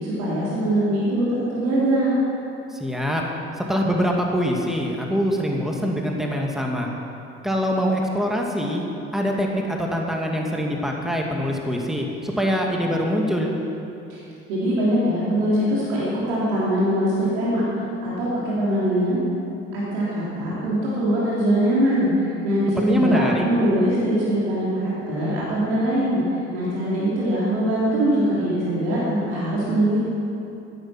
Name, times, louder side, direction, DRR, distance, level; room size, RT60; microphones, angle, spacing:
voice 1, 0.0-2.2 14.1-14.2 14.5-17.6 18.0-19.2 19.7-26.2 26.5-30.0, right 1 dB, 85° right, -8 dB, 3.3 m, -22 dB
voice 2, 2.7-3.2 3.6-6.9 7.4-8.8 9.1-13.5 22.8-23.4, equal, ahead, 0 dB, 2.1 m, -24 dB
13.5 x 11.0 x 5.8 m, 2.8 s
hypercardioid pair, 60°, 33 cm